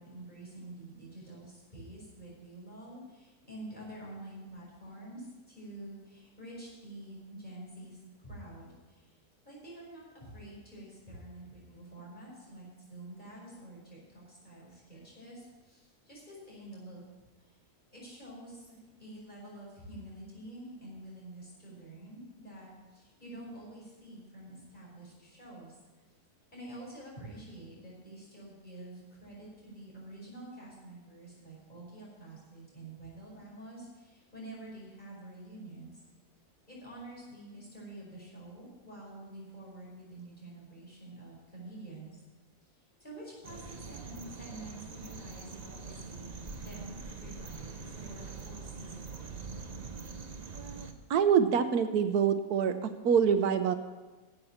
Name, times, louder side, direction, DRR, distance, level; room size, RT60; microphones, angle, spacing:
voice 1, 0.0-9.2 9.4-17.0 17.4-17.6 17.9-26.0 26.5-36.0 36.7-42.2 43.0-49.5, right 1 dB, 30° left, -5 dB, 5.5 m, -48 dB
sound 1, 43.4-50.9, right 4 dB, 35° right, 0.8 m, -44 dB
voice 2, 50.5-53.7, right 7 dB, 80° right, 10 dB, 1.2 m, -26 dB
12.0 x 7.8 x 7.2 m, 1.2 s
omnidirectional pair, 1.6 m